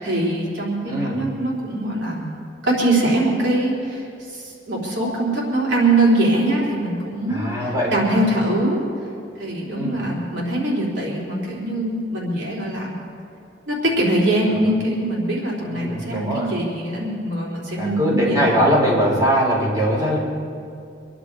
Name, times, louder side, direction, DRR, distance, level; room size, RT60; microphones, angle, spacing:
voice 1, 0.0-2.3 2.6-7.5 7.9-8.8 9.4-13.0 13.7-18.4, right 1 dB, 90° right, -4 dB, 3.8 m, -22 dB
voice 2, 0.9-1.2 7.3-8.2 9.7-10.1 15.6-16.5 17.8-20.2, equal, 20° right, -5 dB, 4.2 m, -21 dB
24.5 x 11.0 x 4.8 m, 2.5 s
head